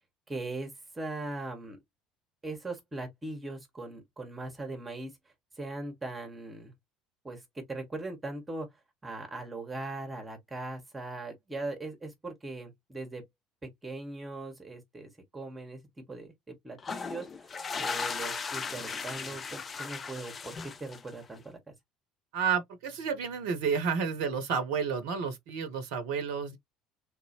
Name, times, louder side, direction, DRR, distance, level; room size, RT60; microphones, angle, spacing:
voice 1, 0.3-1.8 2.4-5.1 5.6-6.7 7.2-7.4 7.7-8.7 9.0-13.2 13.8-17.5 17.8-21.7, right 2 dB, 15° right, 1.3 m, -40 dB
sound 1, 16.8-21.3, left 5 dB, 30° left, 0.5 m, -37 dB
voice 2, 22.3-26.6, right 6 dB, 60° right, 0.7 m, -31 dB
3.5 x 2.6 x 2.8 m
figure-of-eight pair, 60°, 0 cm